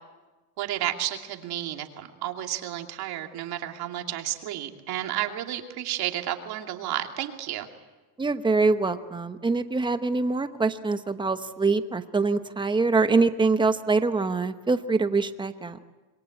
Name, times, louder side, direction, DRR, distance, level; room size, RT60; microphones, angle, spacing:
voice 1, 0.6-7.7, right 12 dB, 50° right, 4 dB, 2.7 m, -32 dB
voice 2, 8.2-15.8, right 3 dB, 10° right, 10 dB, 0.9 m, -24 dB
27.5 x 22.0 x 8.6 m, 1.2 s
cardioid pair, 145°, 48 cm